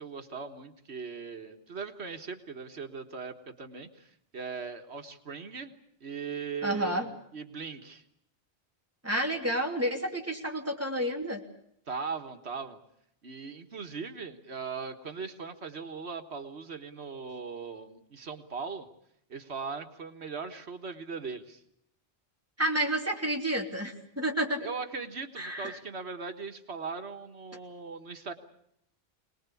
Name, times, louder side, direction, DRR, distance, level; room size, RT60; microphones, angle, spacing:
voice 1, 0.0-5.7 6.0-8.0 11.9-12.8 13.2-18.9 19.3-21.6 24.6-28.3, right 5 dB, 85° right, 6 dB, 1.8 m, -39 dB
voice 2, 6.6-7.1 9.0-11.4 22.6-24.6 25.4-25.8, right 1 dB, 15° right, 1 dB, 3.0 m, -30 dB
25.5 x 20.0 x 8.4 m, 0.72 s
omnidirectional pair, 1.1 m